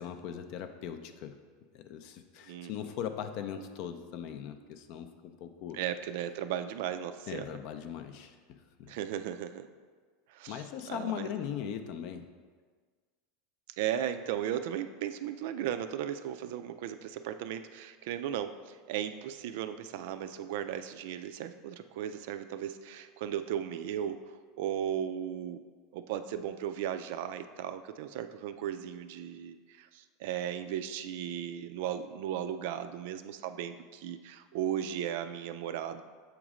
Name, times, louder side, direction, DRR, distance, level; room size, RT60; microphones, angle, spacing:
voice 1, 0.0-1.4 1.7-5.8 7.3-9.0 10.5-12.3, left 9 dB, 45° left, 8 dB, 0.4 m, -39 dB
voice 2, 5.7-7.5 8.9-9.7 10.3-10.6 10.9-11.3 13.8-25.6 25.9-36.0, right 10 dB, 60° right, 10 dB, 0.3 m, -36 dB
7.1 x 3.0 x 4.9 m, 1.6 s
supercardioid pair, 165°, 0 cm